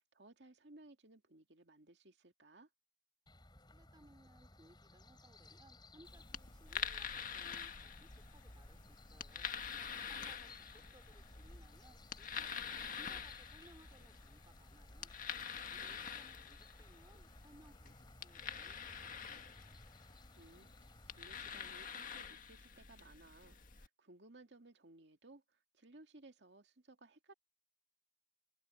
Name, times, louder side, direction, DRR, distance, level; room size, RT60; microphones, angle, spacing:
voice 1, 0.0-2.7 10.0-10.3 20.4-27.3, right 2 dB, 80° right, 2.3 m, -61 dB
sound 1, 3.3-21.5, left 2 dB, 25° left, 4.5 m, -61 dB
voice 2, 3.7-9.5 10.1-15.1 15.7-19.7, right 1 dB, 25° right, 4.0 m, -65 dB
sound 2, 6.0-23.9, left 7 dB, 50° left, 1.8 m, -47 dB
head